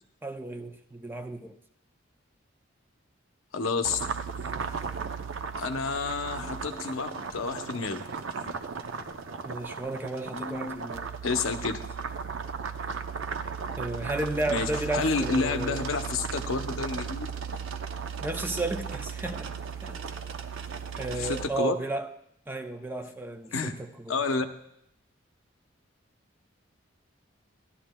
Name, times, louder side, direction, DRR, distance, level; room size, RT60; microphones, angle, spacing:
voice 1, 0.2-1.6 9.4-11.1 13.8-15.8 18.2-19.5 19.8-20.0 21.0-22.1 22.5-23.7 24.1-24.2, right 2 dB, 10° right, 0.4 m, -33 dB
voice 2, 3.5-4.0 5.6-8.0 8.4-8.5 10.2-10.9 11.2-11.8 14.5-17.3 21.2-21.8 23.5-23.7 24.1-24.4, left 4 dB, 90° left, 0.7 m, -30 dB
sound 1, 3.8-21.5, right 6 dB, 80° right, 0.5 m, -36 dB
14.5 x 11.5 x 2.2 m
head